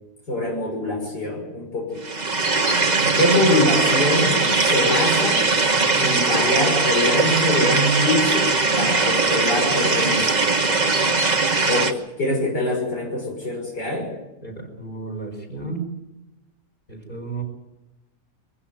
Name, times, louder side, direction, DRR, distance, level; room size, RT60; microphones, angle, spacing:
voice 1, 0.3-2.0 3.2-5.5 6.0-10.5 11.7-14.1, left 1 dB, 75° left, -1 dB, 6.6 m, -24 dB
sound 1, 2.0-11.9, right 3 dB, 25° right, 1.4 m, -20 dB
voice 2, 2.9-3.5 14.4-15.8 16.9-17.4, right 3 dB, 30° left, 3 dB, 5.4 m, -33 dB
24.0 x 15.5 x 9.2 m, 0.98 s
omnidirectional pair, 1.8 m